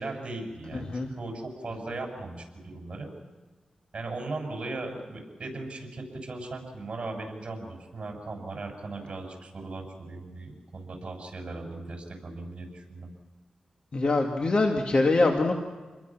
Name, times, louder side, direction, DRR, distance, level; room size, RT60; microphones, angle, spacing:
voice 1, 0.0-3.1 3.9-13.1, right 2 dB, 50° right, 3 dB, 7.1 m, -38 dB
voice 2, 0.7-1.1 13.9-15.5, left 2 dB, 50° left, 2 dB, 2.2 m, -24 dB
28.5 x 21.5 x 6.2 m, 1.3 s
cardioid pair, 75°, 2 cm